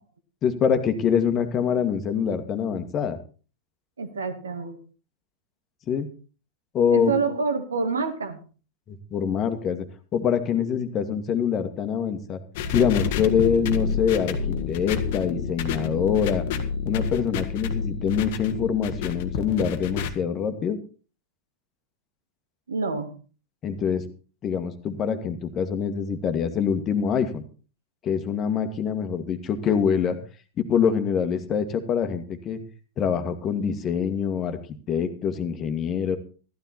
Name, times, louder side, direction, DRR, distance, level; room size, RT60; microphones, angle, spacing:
voice 1, 0.4-3.2 5.9-6.1 6.7-7.1 8.9-9.8 10.1-12.4 12.7-16.5 16.9-20.8 23.6-24.0 24.4-27.4 28.0-30.2 30.6-32.6 33.0-34.6 34.9-36.2, left 7 dB, 30° left, 8 dB, 1.8 m, -25 dB
voice 2, 4.0-4.8 6.9-8.4 22.7-23.2, right 4 dB, 70° right, 8 dB, 1.9 m, -27 dB
sound 1, 12.6-20.1, left 6 dB, 50° left, 1.5 m, -29 dB
14.0 x 13.0 x 4.2 m, 0.37 s
figure-of-eight pair, 90°, 0 cm